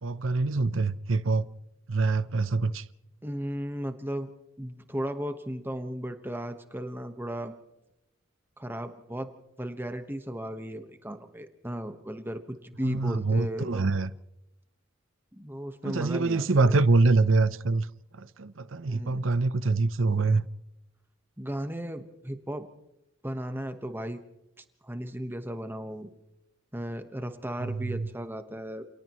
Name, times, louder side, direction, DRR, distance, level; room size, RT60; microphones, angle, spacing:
voice 1, 0.0-1.5 1.9-2.9 12.8-14.1 15.8-17.9 18.1-20.5 27.6-28.1, right 3 dB, 75° right, 0.7 m, -25 dB
voice 2, 3.2-4.3 4.6-7.6 8.6-9.3 9.6-13.9 15.3-16.8 18.9-19.3 21.4-22.7 23.2-24.2 24.6-26.1 26.7-28.8, equal, 10° right, 1.3 m, -35 dB
29.0 x 28.5 x 3.1 m
head